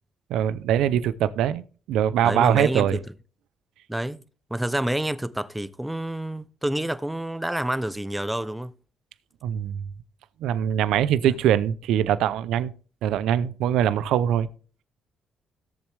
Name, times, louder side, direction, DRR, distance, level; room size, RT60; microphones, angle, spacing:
voice 1, 0.3-3.0 9.4-9.8 10.4-12.7 13.0-14.5, right 10 dB, 85° right, 0.6 m, -23 dB
voice 2, 2.2-3.0 3.9-4.2 4.5-8.7 11.2-11.3, right 1 dB, 5° right, 0.7 m, -28 dB
17.0 x 7.2 x 3.4 m
cardioid pair, 90°, 0 cm